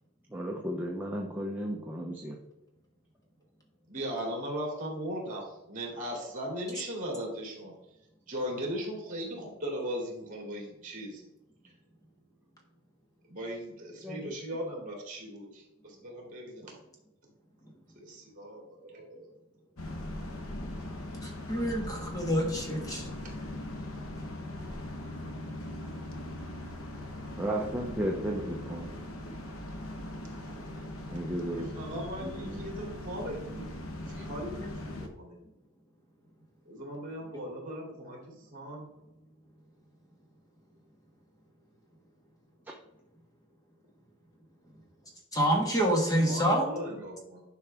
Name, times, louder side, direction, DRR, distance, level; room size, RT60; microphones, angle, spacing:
voice 1, 0.3-2.4 14.0-14.3 27.4-28.9 31.1-31.7 32.2-32.8, right 1 dB, 10° right, -1 dB, 0.8 m, -34 dB
voice 2, 3.9-7.7 8.3-11.2 13.3-16.7 17.9-19.3 28.3-28.4 31.5-35.4 36.7-38.2 38.5-38.9 46.2-47.4, equal, 40° right, -1 dB, 3.0 m, -38 dB
sound 1, 19.8-35.1, left 1 dB, 80° left, 1.1 m, -40 dB
voice 3, 21.2-23.0 45.3-46.7, equal, 15° left, 0 dB, 1.5 m, -27 dB
10.5 x 5.6 x 3.5 m, 0.89 s
head